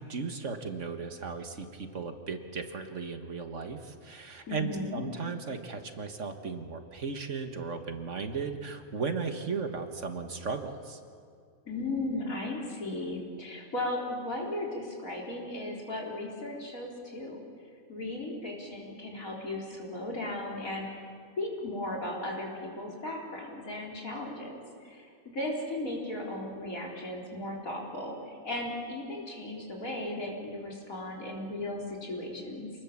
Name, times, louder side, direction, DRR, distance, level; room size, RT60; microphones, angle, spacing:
voice 1, 0.0-11.0, right 5 dB, 60° right, 6 dB, 1.9 m, -36 dB
voice 2, 4.5-5.0 11.7-17.4 17.9-21.0 21.4-24.6 24.8-32.7, left 1 dB, 85° left, -2 dB, 4.6 m, -36 dB
28.0 x 20.0 x 7.3 m, 2.2 s
omnidirectional pair, 1.4 m